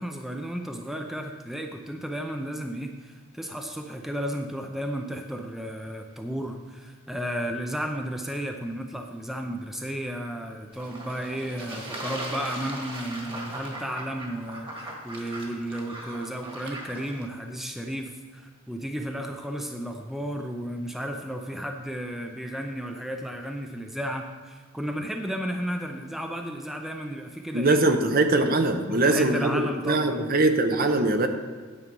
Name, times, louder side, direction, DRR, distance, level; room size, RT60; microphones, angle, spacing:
voice 1, 0.0-27.8 28.9-30.3, equal, ahead, 3 dB, 0.5 m, -33 dB
Fowl / Bird / Water, 10.7-17.3, right 1 dB, 25° right, 1.5 m, -39 dB
voice 2, 27.5-31.3, right 2 dB, 45° right, 6 dB, 0.8 m, -22 dB
9.8 x 7.4 x 5.3 m, 1.5 s
head